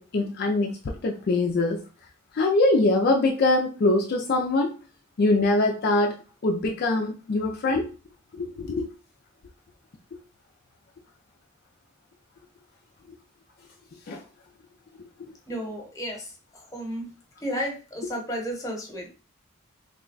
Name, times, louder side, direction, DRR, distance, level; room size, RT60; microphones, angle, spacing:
voice 1, 0.0-1.8 2.3-4.8 5.2-7.9 8.3-8.9 14.1-14.2 15.2-15.3, left 2 dB, 50° left, 1 dB, 0.4 m, -23 dB
voice 2, 15.5-17.1 17.4-19.1, equal, 15° left, 0 dB, 1.0 m, -33 dB
3.2 x 2.2 x 3.8 m, 0.34 s
head